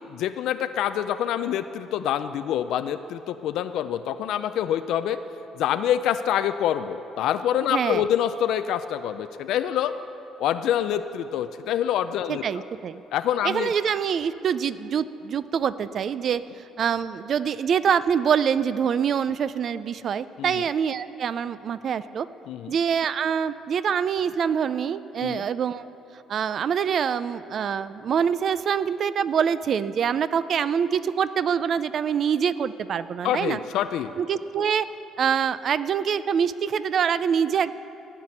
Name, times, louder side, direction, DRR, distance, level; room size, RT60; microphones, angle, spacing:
voice 1, 0.1-5.2 5.6-10.0 10.4-12.4 13.1-13.7 20.4-20.5 22.5-22.7 25.2-25.4 33.2-34.1, left 10 dB, 65° left, 10 dB, 0.4 m, -26 dB
voice 2, 7.7-8.0 12.3-13.0 13.4-22.3 22.7-25.8 26.3-33.6 34.2-34.9 35.2-37.7, right 7 dB, 40° right, 15 dB, 0.3 m, -25 dB
14.5 x 5.9 x 9.8 m, 2.9 s
cardioid pair, 160°, 0 cm